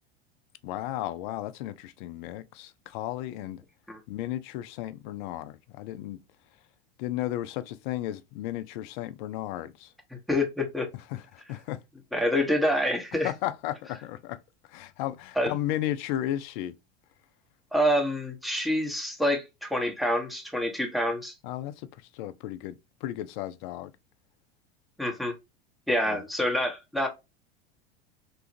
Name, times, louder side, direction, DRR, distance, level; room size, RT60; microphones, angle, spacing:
voice 1, 0.6-3.6 4.1-6.2 7.0-9.9 11.1-11.8 13.2-14.4 14.7-16.8 21.4-23.9 26.1-26.2, left 13 dB, 55° left, 0.4 m, -34 dB
voice 2, 10.3-10.9 12.1-13.3 15.4-15.5 17.7-21.3 25.0-25.3 25.9-27.1, left 1 dB, ahead, 0.9 m, -27 dB
3.0 x 2.4 x 2.5 m
hypercardioid pair, 85°, 30 cm